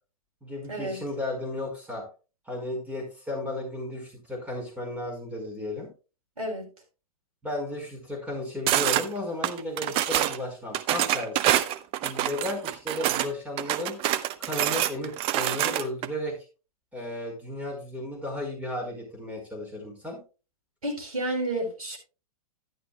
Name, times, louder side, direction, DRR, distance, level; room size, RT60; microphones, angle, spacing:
voice 1, 0.4-2.0 2.5-5.9 7.4-11.5 12.0-14.0 14.4-16.4 16.9-20.2, left 1 dB, 5° right, 1 dB, 4.9 m, -34 dB
voice 2, 6.4-6.7 20.8-22.0, right 1 dB, 75° right, 2 dB, 4.3 m, -30 dB
sound 1, 8.7-9.1 9.4-10.4 10.7-13.3 13.6-16.1, right 13 dB, 30° right, 0.7 m, -26 dB
11.0 x 11.0 x 2.3 m, 0.32 s
figure-of-eight pair, 110°, 19 cm